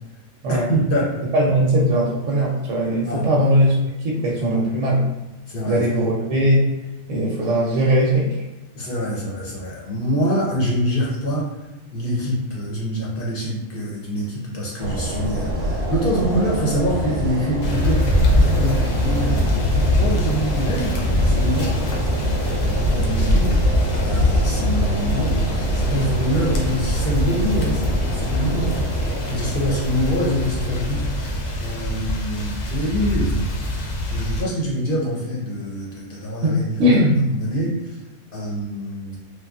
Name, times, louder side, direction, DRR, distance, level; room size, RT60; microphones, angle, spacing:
voice 1, 0.5-1.2 3.1-3.3 4.4-4.7 5.5-5.9 8.7-11.5 11.9-18.0 18.3-19.5 19.9-23.5 24.0-33.5 34.1-36.9 37.3-38.0 38.3-39.2, equal, 50° left, -5 dB, 0.8 m, -25 dB
voice 2, 1.3-5.0 5.7-6.7 7.1-8.4 36.4-37.2, equal, 80° right, -3 dB, 0.9 m, -19 dB
sound 1, 14.8-32.7, equal, 55° right, 0.6 m, -27 dB
sound 2, 17.6-34.4, left 1 dB, 80° left, 1.0 m, -23 dB
3.2 x 2.2 x 2.3 m, 1.1 s
omnidirectional pair, 1.4 m